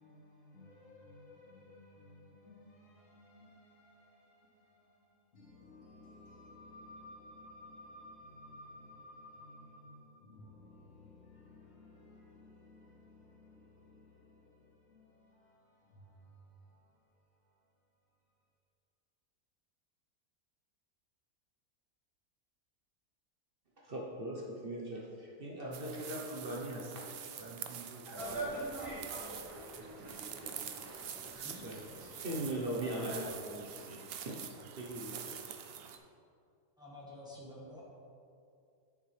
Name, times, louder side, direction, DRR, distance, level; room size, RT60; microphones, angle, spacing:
voice 1, 0.0-17.1 17.4-17.6, left 1 dB, 75° left, 2.5 m, -56 dB
voice 2, 23.8-29.4 29.8-34.4 34.8-35.4, right 1 dB, 45° right, 1.0 m, -42 dB
sound 1, 25.7-36.0, right 8 dB, 60° right, 0.6 m, -46 dB
sound 2, 28.2-33.3, right 2 dB, 25° right, 1.4 m, -44 dB
voice 3, 36.8-37.8, left 1 dB, 5° right, 1.3 m, -49 dB
9.1 x 7.1 x 3.3 m
omnidirectional pair, 1.5 m